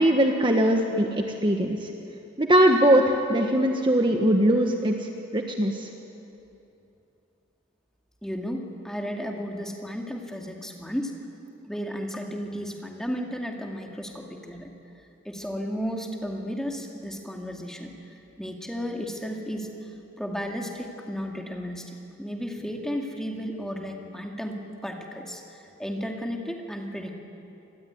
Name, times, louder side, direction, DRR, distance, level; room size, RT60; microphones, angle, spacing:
voice 1, 0.0-1.9 2.4-5.9, right 1 dB, 25° right, 3 dB, 1.4 m, -21 dB
voice 2, 8.2-11.1 11.6-14.7 15.2-17.9 18.4-19.9 20.2-27.2, equal, 5° left, 1 dB, 2.3 m, -34 dB
26.5 x 20.5 x 9.6 m, 2.8 s
head